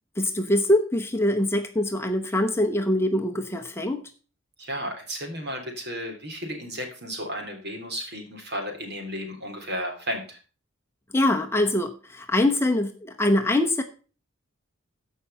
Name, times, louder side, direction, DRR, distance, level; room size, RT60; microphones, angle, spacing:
voice 1, 0.2-4.0 11.1-13.8, left 1 dB, 10° left, 4 dB, 0.9 m, -23 dB
voice 2, 4.6-10.4, equal, 55° right, 3 dB, 3.6 m, -33 dB
14.5 x 5.5 x 5.6 m, 0.37 s
head